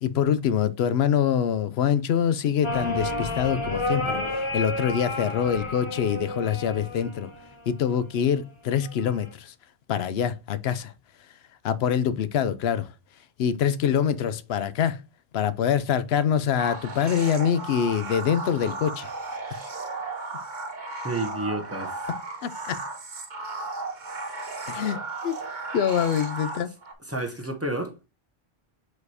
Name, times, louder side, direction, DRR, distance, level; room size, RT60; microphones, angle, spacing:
voice 1, 0.0-7.3 7.7-9.5 9.9-10.9 11.6-12.9 13.4-15.0 15.3-19.1 22.4-22.8 24.7-25.3 25.7-26.7, left 8 dB, 75° left, 0.9 m, -25 dB
sound 1, 2.6-7.7 8.8-9.3, left 1 dB, 30° left, 1.0 m, -31 dB
sound 2, 16.6-26.9, right 3 dB, 50° right, 1.2 m, -35 dB
voice 2, 21.0-22.0 27.1-28.1, right 1 dB, 15° right, 1.1 m, -30 dB
4.8 x 4.2 x 4.9 m
omnidirectional pair, 1.1 m